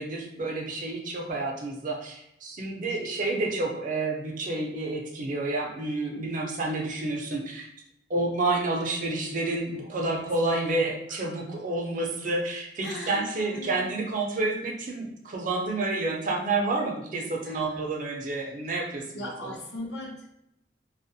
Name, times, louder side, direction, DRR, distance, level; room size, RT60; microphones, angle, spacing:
voice 1, 0.0-7.7 8.1-19.5, right 2 dB, 50° right, 1 dB, 0.5 m, -29 dB
voice 2, 9.8-11.4 12.8-13.9 17.4-17.8 19.1-20.3, equal, 70° left, -4 dB, 0.8 m, -40 dB
2.4 x 2.1 x 2.6 m, 0.80 s
head